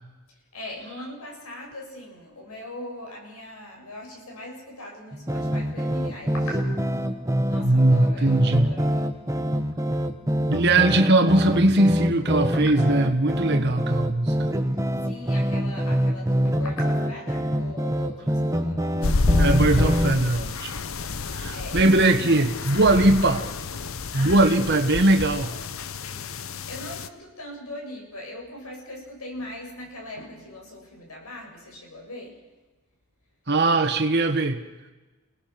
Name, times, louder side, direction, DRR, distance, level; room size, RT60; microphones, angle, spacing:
voice 1, 0.5-9.2 12.5-12.9 15.0-18.9 21.5-21.9 22.2-22.4 24.1-25.1 25.5-25.6 26.0-32.4, left 1 dB, 80° left, 0 dB, 7.6 m, -40 dB
sound 1, 5.1-20.3, equal, 15° right, 1.3 m, -25 dB
voice 2, 7.6-8.7 10.5-14.5 19.3-20.7 21.3-23.5 24.1-25.5 33.5-34.6, right 2 dB, 50° right, 4 dB, 1.6 m, -20 dB
sound 2, 19.0-27.1, left 3 dB, 65° left, 0.9 m, -28 dB
29.0 x 19.0 x 6.1 m, 1.2 s
head